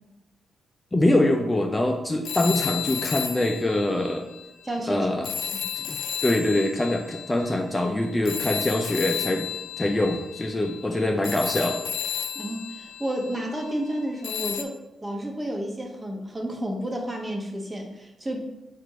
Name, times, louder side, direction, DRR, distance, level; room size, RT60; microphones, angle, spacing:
voice 1, 0.9-4.3 4.9-5.3 5.8-9.5 9.8-11.8, left 1 dB, 15° left, 3 dB, 0.5 m, -24 dB
sound 1, 2.2-4.7 5.2-13.7 14.2-14.6, left 9 dB, 85° left, 0.3 m, -33 dB
voice 2, 4.6-5.1 12.3-18.4, right 1 dB, 25° right, 1 dB, 0.9 m, -31 dB
4.5 x 2.5 x 4.6 m, 0.98 s
cardioid pair, 70°, 0 cm